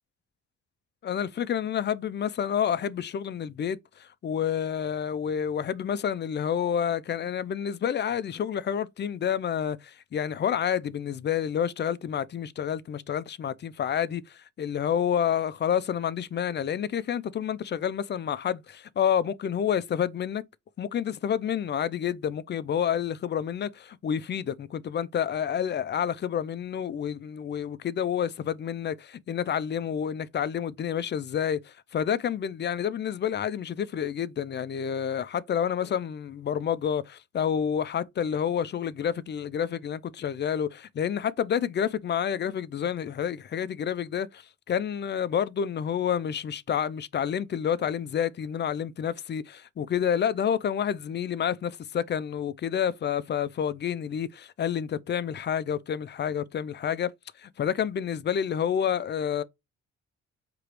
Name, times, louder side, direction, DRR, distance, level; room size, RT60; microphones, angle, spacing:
voice 1, 1.0-20.4 20.8-57.1 57.4-59.4, left 8 dB, 35° left, 0.4 m, -29 dB
4.7 x 3.0 x 3.1 m
cardioid pair, 90°, 30 cm